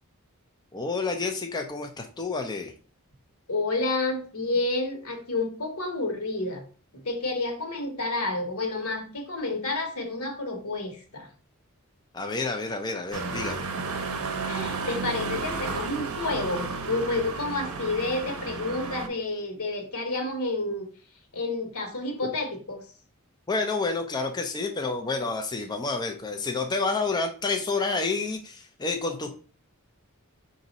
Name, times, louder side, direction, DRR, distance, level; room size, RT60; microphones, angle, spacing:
voice 1, 0.7-2.7 12.1-13.7 23.5-29.3, left 3 dB, 20° left, 4 dB, 0.4 m, -29 dB
voice 2, 3.5-6.6 6.9-11.3 14.5-20.9 21.3-22.8, left 2 dB, 80° left, 4 dB, 1.2 m, -30 dB
sound 1, 13.1-19.1, right 4 dB, 75° right, 0.6 m, -32 dB
5.1 x 2.6 x 4.0 m, 0.40 s
head